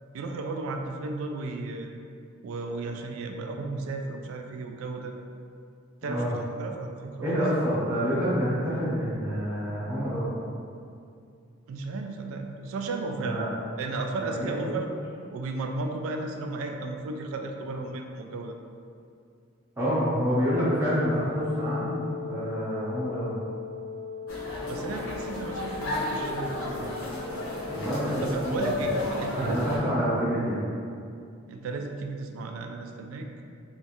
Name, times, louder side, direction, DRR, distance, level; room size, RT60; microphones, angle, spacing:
voice 1, 0.1-1.9 2.4-5.1 6.0-6.3 6.6-7.5 11.7-13.4 13.8-14.9 15.3-18.6 24.7-27.0 28.2-29.7 31.5-33.3, right 3 dB, 85° right, 4 dB, 0.3 m, -34 dB
voice 2, 7.2-10.3 13.2-13.5 14.2-14.7 19.8-22.0 22.3-23.4 27.7-29.0 29.4-30.6, equal, 15° right, -10 dB, 0.6 m, -27 dB
Wind instrument woodwind instrument, 20.5-28.4, left 6 dB, 30° left, 0.5 m, -38 dB
sound 1, 24.3-29.8, left 1 dB, 85° left, 0.7 m, -33 dB
3.0 x 2.4 x 2.9 m, 2.4 s
head